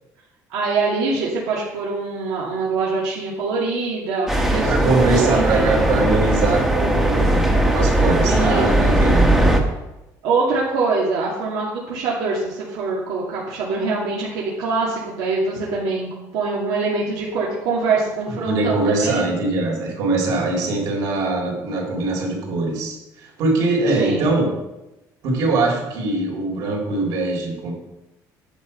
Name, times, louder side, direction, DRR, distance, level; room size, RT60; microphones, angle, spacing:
voice 1, 0.5-5.7 8.3-8.9 10.2-19.3 24.0-24.3, right 3 dB, 85° right, -5 dB, 2.6 m, -24 dB
sound 1, 4.3-9.6, right 1 dB, 5° right, 1.1 m, -18 dB
voice 2, 4.7-7.4 7.7-9.6 18.3-24.5 25.2-27.7, right 3 dB, 60° right, -1 dB, 3.9 m, -22 dB
10.0 x 8.4 x 5.5 m, 0.97 s
cardioid pair, 165°, 7 cm